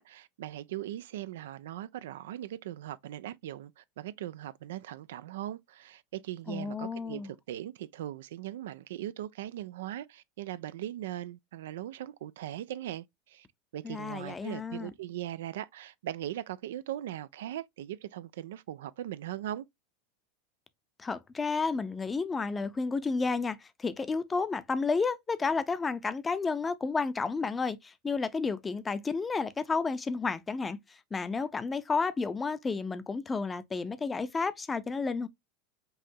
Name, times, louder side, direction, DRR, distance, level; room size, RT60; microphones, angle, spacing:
voice 1, 0.0-13.5 13.7-19.7, right 12 dB, 70° right, 0.3 m, -39 dB
voice 2, 6.5-7.3 13.8-14.9 21.0-35.3, left 4 dB, 20° left, 0.6 m, -31 dB
5.5 x 2.7 x 2.7 m
figure-of-eight pair, 85°, 0 cm